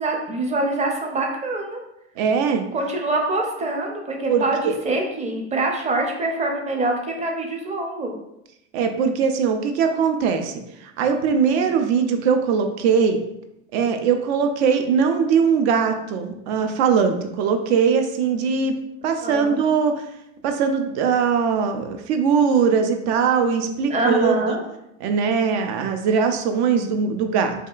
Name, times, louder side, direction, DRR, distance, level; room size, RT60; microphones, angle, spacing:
voice 1, 0.0-1.8 2.7-8.1 11.5-11.7 19.2-19.6 23.9-24.6, right 2 dB, 20° right, 1 dB, 0.5 m, -25 dB
voice 2, 2.2-2.6 4.3-4.7 8.7-10.6 11.0-13.2 13.7-18.8 19.0-20.0 20.4-24.4 25.0-27.5, right 6 dB, 65° right, 6 dB, 0.5 m, -21 dB
2.7 x 2.3 x 2.3 m, 0.84 s
hypercardioid pair, 85°, 35 cm